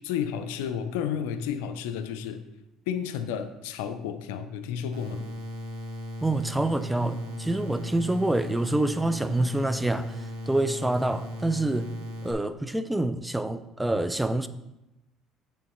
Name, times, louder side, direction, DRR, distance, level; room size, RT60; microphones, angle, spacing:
voice 1, 0.0-2.4 2.9-5.2, left 8 dB, 85° left, 10 dB, 0.5 m, -32 dB
sound 1, 4.9-12.3, left 1 dB, 90° right, 1.2 m, -37 dB
voice 2, 6.2-10.1 10.5-11.9 12.2-14.5, right 2 dB, 5° right, 12 dB, 0.4 m, -26 dB
7.6 x 6.8 x 3.1 m, 0.92 s
supercardioid pair, 80°, 0 cm